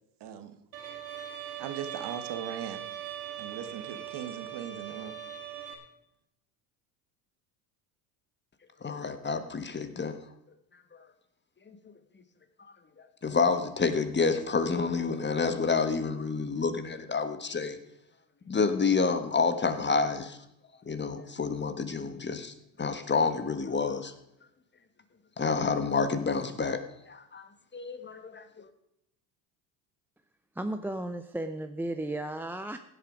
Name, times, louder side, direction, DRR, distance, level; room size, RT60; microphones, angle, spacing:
voice 1, 0.2-0.6 1.6-2.8 3.4-5.2, right 8 dB, 55° right, 9 dB, 1.6 m, -39 dB
Bowed string instrument, 0.7-5.7, right 10 dB, 90° right, 2.3 m, -40 dB
voice 2, 8.8-10.2 11.7-11.8 13.2-17.8 18.5-20.4 20.9-24.1 25.4-28.7, left 4 dB, 20° left, 9 dB, 1.3 m, -29 dB
voice 3, 30.6-32.8, right 1 dB, 5° right, 7 dB, 0.5 m, -34 dB
16.0 x 8.1 x 5.1 m, 0.80 s
supercardioid pair, 90°, 49 cm